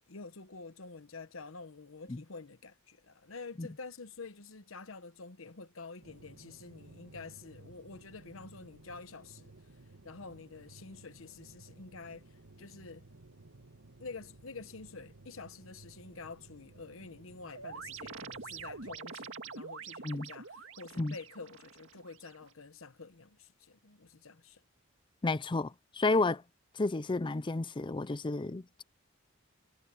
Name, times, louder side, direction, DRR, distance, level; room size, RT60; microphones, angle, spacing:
voice 1, 0.0-9.5 10.0-13.1 14.0-24.6, left 4 dB, 75° left, 1.1 m, -48 dB
sound 1, 6.0-19.0, right 2 dB, 85° right, 2.1 m, -56 dB
sound 2, 17.5-22.5, right 5 dB, 65° right, 2.1 m, -46 dB
voice 2, 25.2-26.4 26.8-28.8, left 3 dB, 25° left, 0.5 m, -31 dB
head